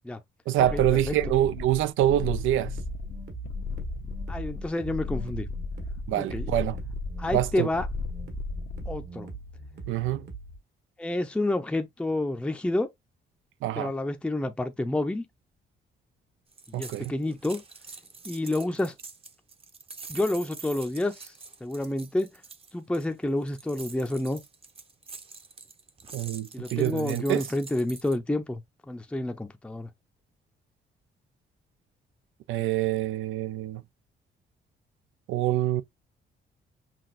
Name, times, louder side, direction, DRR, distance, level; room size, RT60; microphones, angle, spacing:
voice 1, 0.5-2.8 6.1-6.8 7.3-7.7 9.9-10.2 13.6-13.9 16.7-17.1 26.1-27.4 32.5-33.8 35.3-35.8, right 13 dB, 80° right, 0.5 m, -26 dB
sound 1, 0.6-9.0, left 5 dB, 55° left, 0.6 m, -35 dB
sound 2, 2.0-10.6, right 6 dB, 55° right, 1.5 m, -41 dB
voice 2, 4.3-5.5 6.2-6.5 7.2-7.9 8.9-9.3 11.0-12.9 13.8-15.2 16.7-17.6 18.3-18.9 20.1-21.3 21.6-22.3 22.7-24.4 26.5-28.6 28.9-29.9, left 1 dB, 5° left, 0.6 m, -29 dB
sound 3, 16.5-28.2, right 4 dB, 30° right, 0.8 m, -45 dB
5.9 x 2.4 x 2.5 m
cardioid pair, 90°, 20 cm